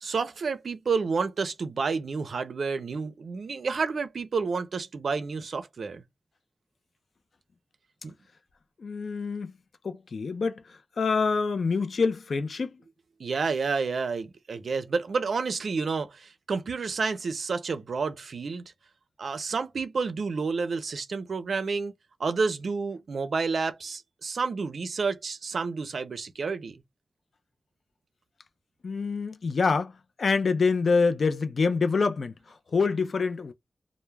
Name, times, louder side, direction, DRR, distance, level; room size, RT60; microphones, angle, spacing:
voice 1, 0.0-6.0 8.0-8.1 13.2-18.6 19.2-21.9 22.2-26.8, right 4 dB, 85° right, 0.4 m, -30 dB
voice 2, 8.8-9.5 9.8-12.8 28.8-32.3 32.7-33.5, left 4 dB, 75° left, 0.3 m, -26 dB
2.2 x 2.0 x 3.1 m
wide cardioid pair, 100°, 0 cm